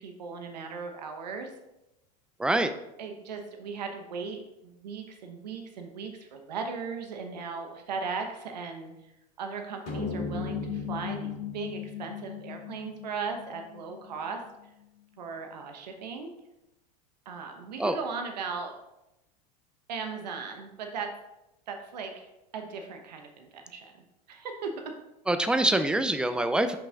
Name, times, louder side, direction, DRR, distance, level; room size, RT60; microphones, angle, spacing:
voice 1, 0.0-1.5 3.0-8.9 9.4-14.4 15.2-16.3 17.2-18.7 19.9-21.1 21.7-23.9 24.3-24.7, right 5 dB, 90° right, 4 dB, 1.0 m, -37 dB
voice 2, 2.4-2.7 17.8-17.9 25.3-26.8, right 1 dB, 5° right, 9 dB, 0.4 m, -25 dB
sound 1, 9.9-14.5, left 6 dB, 50° left, 2.2 m, -36 dB
5.8 x 5.5 x 3.8 m, 0.90 s
hypercardioid pair, 105°, 21 cm